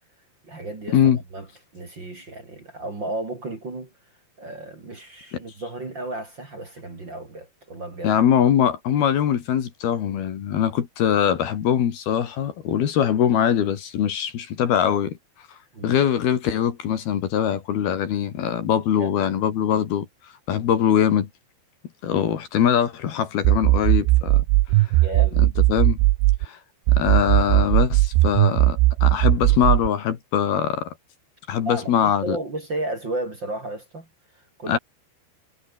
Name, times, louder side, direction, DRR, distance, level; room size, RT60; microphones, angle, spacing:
voice 1, 0.4-1.0 1.3-1.4 1.7-3.9 4.4-8.2 15.7-16.0 19.0-19.2 24.9-25.5 31.6-34.1 34.6-34.8, right 2 dB, 25° right, 3.5 m, -33 dB
voice 2, 8.0-15.2 15.8-20.1 20.5-21.3 22.0-24.4 24.8-24.9 25.7-26.0 26.4-26.6 27.0-30.9 31.5-32.4 34.7-34.8, left 9 dB, 65° left, 3.9 m, -22 dB
sound 1, 23.5-26.5 26.9-29.9, right 19 dB, 90° right, 3.1 m, -18 dB
omnidirectional pair, 5.1 m